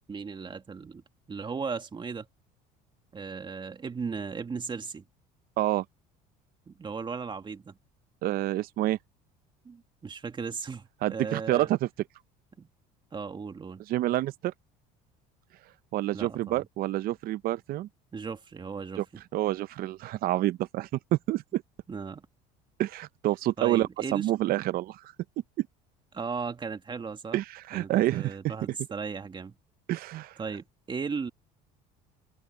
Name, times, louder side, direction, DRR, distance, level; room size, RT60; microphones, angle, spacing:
voice 1, 0.1-1.0 1.3-2.3 3.1-5.0 6.7-7.8 9.6-11.7 12.6-12.7 13.1-13.8 16.1-16.7 18.1-19.0 21.9-22.3 23.6-24.3 26.1-27.4 27.7-29.6 30.4-31.3, right 5 dB, 25° right, 2.2 m, -36 dB
voice 2, 8.2-9.0 11.0-11.9 13.9-14.5 15.9-17.9 19.0-19.1 19.3-21.6 22.8-25.0 25.6-25.7 27.3-28.4 29.9-30.3, right 15 dB, 55° right, 0.6 m, -28 dB
supercardioid pair, 100°, 18 cm